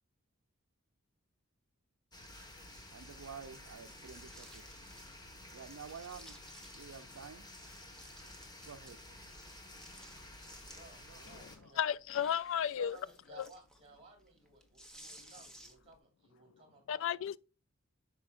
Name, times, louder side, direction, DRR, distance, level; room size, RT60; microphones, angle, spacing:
sound 1, 2.1-11.6, left 1 dB, 20° left, 1.4 m, -52 dB
sound 2, 2.2-3.2 3.8-5.2 5.6-7.2 7.5-11.1 11.5-16.0, right 1 dB, 5° left, 1.1 m, -58 dB
voice 1, 2.9-4.5 5.5-6.4 6.7-7.5 8.6-9.0 11.1-11.2, right 6 dB, 85° right, 0.5 m, -49 dB
voice 2, 10.7-11.8 12.7-17.0, right 2 dB, 30° right, 2.8 m, -57 dB
voice 3, 11.8-13.0 13.4-13.5 16.9-17.4, left 9 dB, 65° left, 0.3 m, -33 dB
8.1 x 5.7 x 2.4 m
head